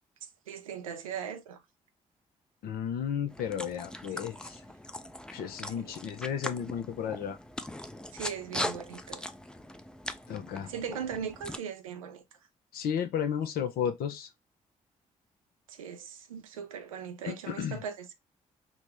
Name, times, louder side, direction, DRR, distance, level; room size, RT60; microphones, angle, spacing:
voice 1, 0.2-1.6 5.8-6.0 8.1-9.2 10.5-12.2 15.7-18.1, right 7 dB, 90° right, 0.4 m, -39 dB
voice 2, 2.6-4.6 5.3-7.4 10.3-10.7 12.7-14.3 17.2-17.8, left 8 dB, 60° left, 0.6 m, -33 dB
sound 1, 3.3-11.6, left 1 dB, 5° left, 0.4 m, -40 dB
4.0 x 2.1 x 3.2 m
hypercardioid pair, 40°, 17 cm